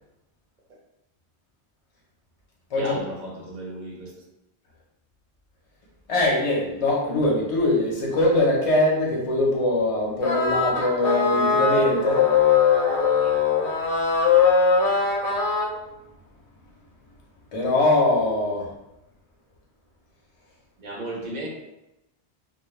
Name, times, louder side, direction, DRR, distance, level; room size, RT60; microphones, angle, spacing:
voice 1, 2.8-4.2 13.2-13.3 20.8-21.5, right 1 dB, 50° right, -2 dB, 0.6 m, -35 dB
voice 2, 6.1-12.2 17.5-18.7, left 2 dB, 35° left, -4 dB, 0.6 m, -22 dB
sound 1, 10.2-15.7, left 5 dB, 90° left, 0.9 m, -20 dB
2.2 x 2.1 x 3.0 m, 0.91 s
omnidirectional pair, 1.1 m